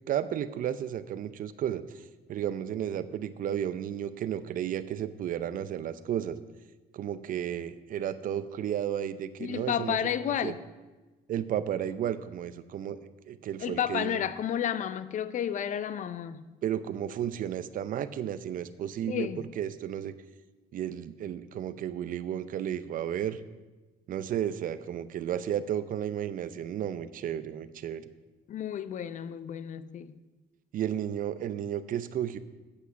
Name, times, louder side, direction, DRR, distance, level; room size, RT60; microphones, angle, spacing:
voice 1, 0.1-6.4 6.9-10.0 10.4-10.5 11.3-13.0 13.3-14.2 16.6-20.1 20.7-23.4 24.1-28.0 30.7-32.4, right 10 dB, 55° right, 0.6 m, -33 dB
voice 2, 9.4-10.6 13.6-16.4 19.1-19.4 28.5-30.1, left 9 dB, 50° left, 0.6 m, -31 dB
8.3 x 8.3 x 6.1 m
cardioid pair, 110°, 17 cm